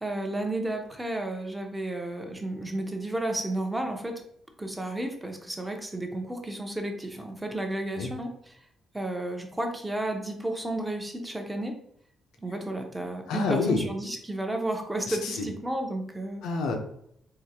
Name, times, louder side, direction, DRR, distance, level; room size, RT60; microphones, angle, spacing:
voice 1, 0.0-4.2 4.6-8.6 8.9-11.7 12.4-16.4, right 1 dB, 10° right, 3 dB, 0.6 m, -32 dB
voice 2, 13.3-13.8 15.1-15.5 16.4-16.8, left 4 dB, 90° left, 3 dB, 0.6 m, -28 dB
3.7 x 2.6 x 2.8 m, 0.70 s
cardioid pair, 90°, 0 cm